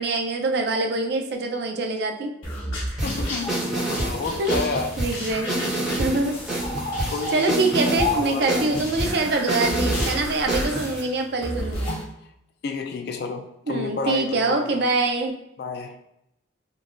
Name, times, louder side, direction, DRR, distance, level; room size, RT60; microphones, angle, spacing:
voice 1, 0.0-2.3 4.4-4.6 5.0-5.6 6.0-6.4 7.3-12.0 13.7-15.3, right 3 dB, 55° right, 4 dB, 0.4 m, -24 dB
sound 1, 2.4-12.0, left 1 dB, 90° left, 1.1 m, -31 dB
voice 2, 3.0-5.0 7.1-7.5 8.2-8.7 12.6-14.8 15.6-16.0, left 4 dB, 55° left, 5 dB, 0.3 m, -31 dB
sound 2, 3.0-11.0, right 1 dB, 5° right, 0.9 m, -28 dB
3.8 x 2.2 x 2.4 m, 0.82 s
head